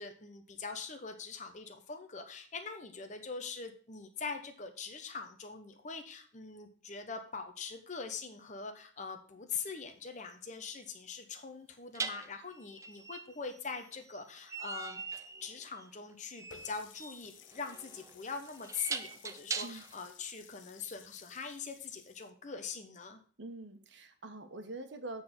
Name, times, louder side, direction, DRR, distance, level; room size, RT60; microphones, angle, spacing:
voice 1, 0.0-23.2, left 5 dB, 40° left, 5 dB, 0.9 m, -43 dB
sound 1, 9.6-9.7 12.0-20.0, right 4 dB, 15° right, 0.4 m, -42 dB
Water tap faucet, 16.5-22.3, left 9 dB, 90° left, 0.7 m, -57 dB
voice 2, 23.4-25.2, right 2 dB, 70° right, 6 dB, 1.2 m, -44 dB
8.4 x 4.0 x 6.5 m, 0.43 s
head